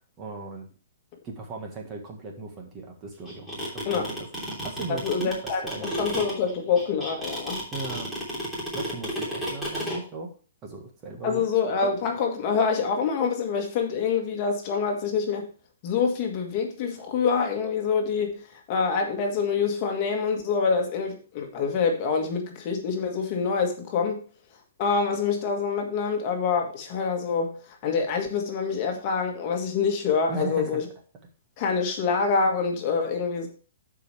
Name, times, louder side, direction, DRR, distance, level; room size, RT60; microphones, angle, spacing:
voice 1, 0.2-0.7 1.2-4.3 4.6-6.3 7.7-8.1 8.7-10.3 10.6-11.4 30.3-30.8, right 3 dB, 20° right, 1.5 m, -37 dB
sound 1, 3.3-10.0, equal, 5° right, 3.1 m, -32 dB
voice 2, 5.0-7.6 11.2-15.5 15.8-18.3 18.7-24.2 24.8-27.6 27.8-30.8 31.6-33.5, left 5 dB, 30° left, 1.6 m, -26 dB
13.0 x 5.0 x 3.3 m
hypercardioid pair, 165°, 0 cm